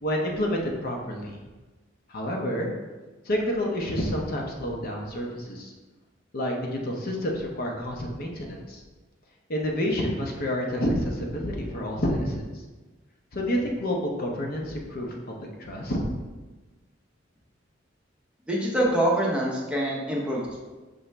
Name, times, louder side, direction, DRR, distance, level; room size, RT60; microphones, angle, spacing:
voice 1, 0.0-1.4 2.1-2.7 3.2-5.7 6.3-8.8 9.5-12.6 13.3-16.0, equal, 50° left, 0 dB, 0.6 m, -29 dB
voice 2, 18.5-20.6, right 1 dB, 5° right, -4 dB, 0.7 m, -25 dB
5.3 x 2.9 x 3.3 m, 1.2 s
head